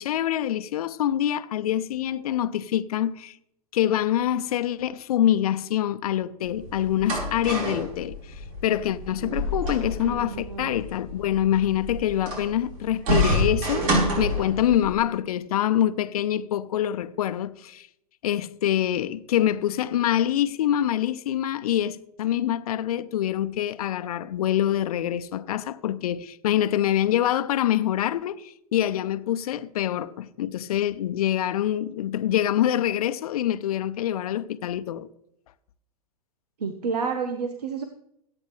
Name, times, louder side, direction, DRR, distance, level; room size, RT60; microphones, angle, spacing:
voice 1, 0.0-3.4 3.7-13.9 14.2-17.9 18.2-35.1, left 11 dB, 70° left, 0.7 m, -25 dB
sound 1, 6.5-14.9, equal, 60° right, 4.5 m, -28 dB
voice 2, 9.8-10.8 36.6-37.8, right 5 dB, 80° right, 1.1 m, -30 dB
23.5 x 8.8 x 3.2 m
hypercardioid pair, 100°, 20 cm